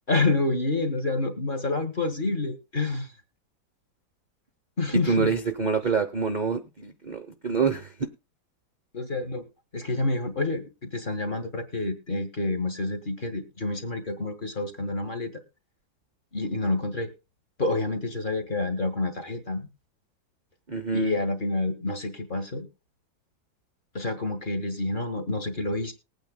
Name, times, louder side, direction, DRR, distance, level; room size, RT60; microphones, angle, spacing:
voice 1, 0.1-3.1 4.8-5.3 8.9-9.4 9.7-15.4 16.3-17.1 17.6-19.7 20.9-22.7 23.9-25.9, left 2 dB, 30° left, 6 dB, 1.4 m, -28 dB
voice 2, 4.9-8.1 20.7-21.2, right 5 dB, 50° right, 8 dB, 0.5 m, -26 dB
20.0 x 9.0 x 2.2 m, 0.28 s
omnidirectional pair, 2.1 m